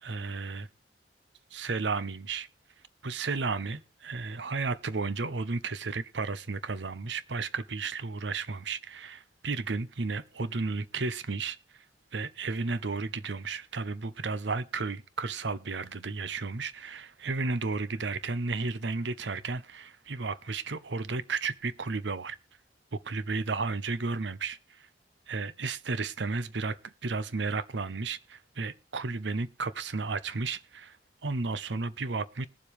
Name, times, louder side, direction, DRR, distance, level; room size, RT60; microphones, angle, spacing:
voice 1, 0.0-0.7 1.5-2.5 3.0-11.6 12.1-22.4 22.9-24.9 25.3-31.0 31.2-32.5, right 4 dB, 75° right, 0.8 m, -33 dB
21.0 x 7.4 x 3.2 m
head